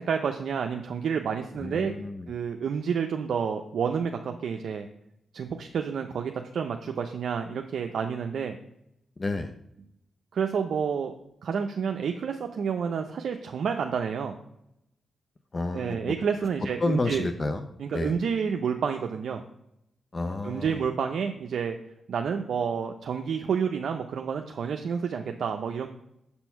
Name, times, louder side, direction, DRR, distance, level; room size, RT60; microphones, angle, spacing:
voice 1, 0.0-1.9 2.3-4.9 5.3-8.6 10.3-11.1 11.4-14.4 15.7-17.3 17.8-19.4 20.4-21.8 22.1-25.9, right 6 dB, 75° right, 5 dB, 0.5 m, -29 dB
voice 2, 1.6-2.3 9.2-9.5 15.5-16.0 16.8-17.6 17.9-18.1 20.1-20.8, left 2 dB, 40° left, 7 dB, 0.6 m, -30 dB
6.9 x 4.4 x 5.6 m, 0.79 s
cardioid pair, 70°, 0 cm